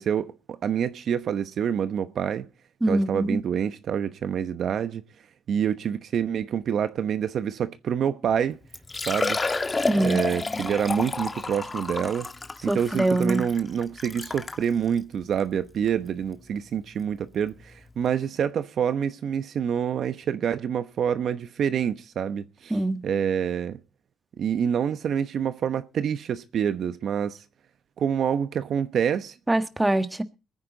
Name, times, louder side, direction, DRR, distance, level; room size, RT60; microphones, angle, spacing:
voice 1, 0.0-2.5 2.9-5.0 5.5-8.6 9.0-9.6 10.0-12.3 12.6-23.8 24.4-27.4 28.0-29.3, right 8 dB, 65° right, 1.0 m, -27 dB
voice 2, 2.8-3.4 9.9-10.2 12.7-13.4 22.7-23.0 29.5-30.2, right 1 dB, 10° right, 1.5 m, -23 dB
Liquid, 8.3-8.4 8.7-14.6 15.3-15.4 15.9-16.0 17.6-17.7 17.9-18.0, left 3 dB, 25° left, 1.5 m, -30 dB
21.5 x 9.6 x 4.0 m
cardioid pair, 90°, 0 cm